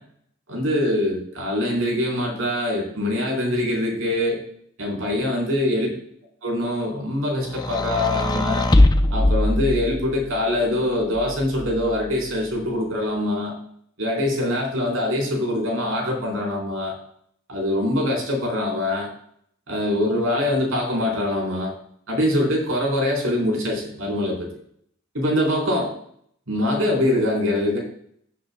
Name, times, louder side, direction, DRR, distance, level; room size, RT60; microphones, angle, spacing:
voice 1, 0.5-4.4 4.8-5.9 6.4-8.7 9.1-13.5 14.0-17.0 17.5-19.1 19.7-21.7 22.1-24.5 25.1-25.9 26.5-27.8, left 1 dB, 75° right, -2 dB, 4.2 m, -23 dB
sound 1, 7.5-10.3 11.2-12.1, left 1 dB, 20° left, 0.5 m, -21 dB
17.5 x 8.1 x 2.3 m, 0.67 s
head